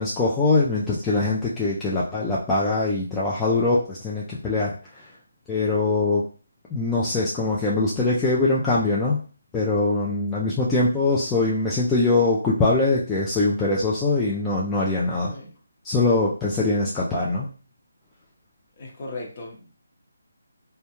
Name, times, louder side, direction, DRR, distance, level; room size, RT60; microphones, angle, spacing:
voice 1, 0.0-5.1 5.5-6.2 6.7-9.2 9.5-15.3 15.8-17.5, left 3 dB, 10° left, -7 dB, 0.3 m, -22 dB
voice 2, 18.8-19.8, left 2 dB, 35° left, -1 dB, 0.9 m, -37 dB
2.2 x 2.2 x 2.9 m, 0.38 s
figure-of-eight pair, 160°, 0 cm